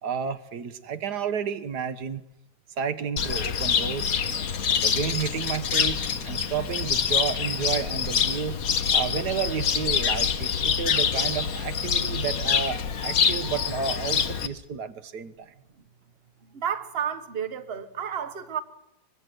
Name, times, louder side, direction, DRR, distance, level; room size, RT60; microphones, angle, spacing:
voice 1, 0.0-2.2 2.8-4.2 4.8-8.6 8.9-15.5, right 7 dB, 60° right, 1.7 m, -31 dB
Cricket, 3.2-14.5, left 7 dB, 55° left, 1.4 m, -26 dB
voice 2, 16.4-18.6, right 8 dB, 35° right, 1.4 m, -31 dB
25.0 x 21.5 x 7.9 m
omnidirectional pair, 2.0 m